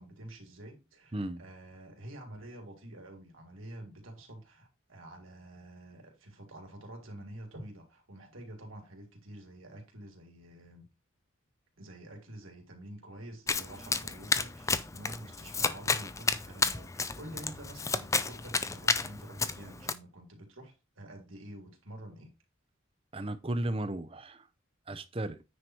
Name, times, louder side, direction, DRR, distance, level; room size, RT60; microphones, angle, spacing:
voice 1, 0.0-10.9 11.8-22.3, right 1 dB, 75° right, 3.3 m, -48 dB
voice 2, 1.1-1.4 23.1-24.5 24.9-25.4, right 1 dB, 25° right, 0.7 m, -34 dB
Domestic sounds home sounds, 13.5-19.9, left 4 dB, 15° left, 0.5 m, -31 dB
9.6 x 4.8 x 4.4 m
head